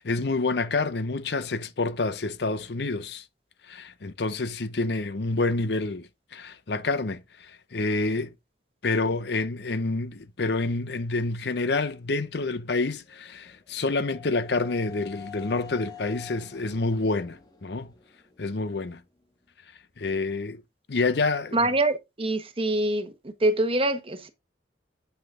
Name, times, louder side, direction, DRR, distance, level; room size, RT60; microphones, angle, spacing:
voice 1, 0.0-3.2 3.7-8.3 8.8-17.9 18.4-19.0 20.0-20.6 20.9-21.7, left 3 dB, 65° left, 0.7 m, -28 dB
sound 1, 13.1-19.0, left 9 dB, 20° left, 1.4 m, -47 dB
voice 2, 21.5-23.1 23.4-24.3, right 2 dB, 30° right, 1.0 m, -24 dB
8.0 x 5.6 x 3.7 m
head